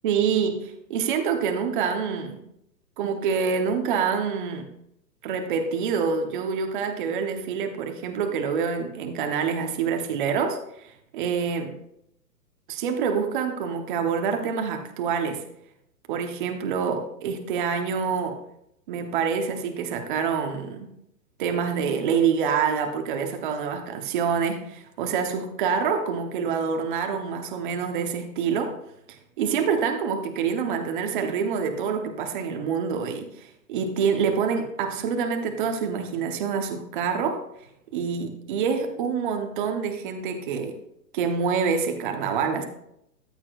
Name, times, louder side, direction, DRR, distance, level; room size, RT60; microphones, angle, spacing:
voice 1, 0.0-2.4 3.0-4.7 5.2-11.7 12.7-15.4 16.1-18.4 18.9-20.9 21.4-28.7 29.1-37.4 37.9-40.8 41.1-42.6, right 6 dB, 30° right, 5 dB, 0.9 m, -26 dB
14.0 x 8.3 x 2.4 m, 0.78 s
hypercardioid pair, 150°, 50 cm